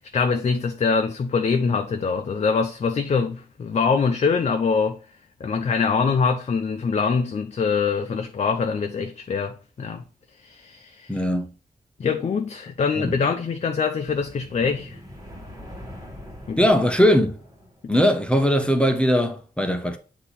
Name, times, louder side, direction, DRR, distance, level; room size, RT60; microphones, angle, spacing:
voice 1, 0.0-5.0 5.4-10.0 10.4-11.2 12.0-15.0 16.5-16.6, left 5 dB, 45° left, 0.5 m, -24 dB
voice 2, 11.1-11.5 13.0-13.1 16.6-17.4 17.9-20.0, equal, 5° left, 0.6 m, -20 dB
sound 1, 14.0-18.0, left 1 dB, 20° right, 1.5 m, -43 dB
8.3 x 2.8 x 4.1 m
wide cardioid pair, 180°, 16 cm